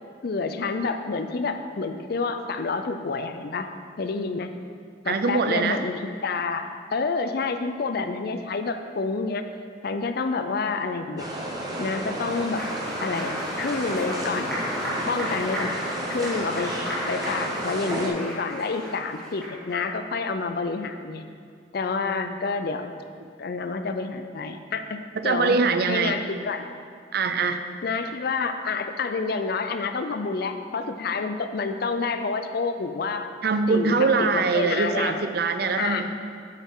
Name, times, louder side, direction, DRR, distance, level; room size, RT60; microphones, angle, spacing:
voice 1, 0.2-3.7 4.0-4.5 5.0-9.4 9.8-11.3 11.8-12.6 13.0-14.5 15.1-15.8 16.1-16.7 17.1-21.2 21.7-22.9 23.4-25.6 25.9-26.7 27.8-33.3 33.7-35.2 35.8-36.1, left 4 dB, 55° left, 8 dB, 0.5 m, -28 dB
voice 2, 5.1-5.8 22.3-22.4 25.2-26.2 27.1-27.6 33.4-36.1, right 4 dB, 55° right, 8 dB, 0.5 m, -23 dB
sound 1, 11.2-18.1, right 1 dB, 20° right, 1.0 m, -32 dB
Applause, 11.9-19.7, equal, 5° left, 2.2 m, -34 dB
8.3 x 7.2 x 3.7 m, 2.2 s
head